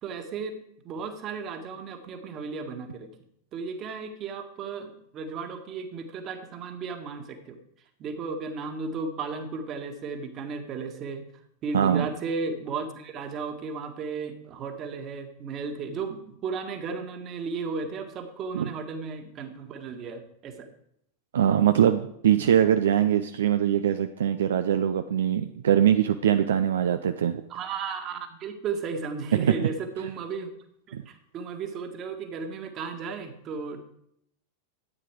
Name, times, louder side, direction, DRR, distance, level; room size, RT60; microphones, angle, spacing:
voice 1, 0.0-3.1 3.5-7.6 8.0-11.3 11.6-20.7 22.4-22.5 27.5-30.5 30.9-33.8, right 5 dB, 30° right, 6 dB, 1.8 m, -35 dB
voice 2, 11.7-12.1 18.5-18.7 21.3-27.4 29.3-29.7 30.9-31.0, right 9 dB, 65° right, 9 dB, 0.6 m, -22 dB
13.5 x 9.3 x 4.8 m, 0.73 s
figure-of-eight pair, 90°, 0 cm